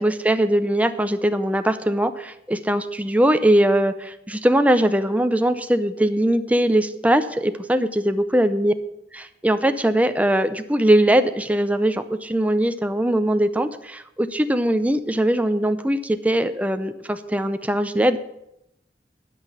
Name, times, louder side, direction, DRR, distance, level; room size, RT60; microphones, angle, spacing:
voice 1, 0.0-8.7 9.1-18.2, right 1 dB, 10° right, 9 dB, 0.6 m, -21 dB
11.5 x 6.0 x 7.0 m, 0.82 s
head